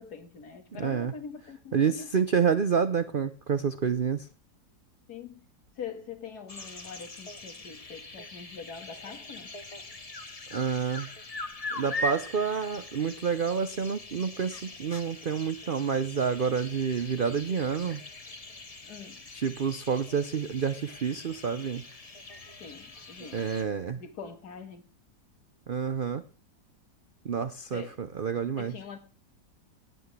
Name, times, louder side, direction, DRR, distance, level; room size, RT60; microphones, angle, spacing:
voice 1, 0.0-2.1 5.1-5.5 5.8-9.5 18.8-19.3 22.6-23.5 24.0-24.9 27.7-28.0 28.6-29.0, left 6 dB, 65° left, 2.0 m, -43 dB
voice 2, 0.8-1.1 1.7-4.3 10.5-11.1 11.7-18.0 19.3-21.8 23.3-24.0 25.7-26.2 27.2-28.7, right 6 dB, 60° right, 0.5 m, -28 dB
sound 1, 6.5-23.6, left 2 dB, 25° left, 1.1 m, -42 dB
18.0 x 8.2 x 3.2 m
omnidirectional pair, 1.9 m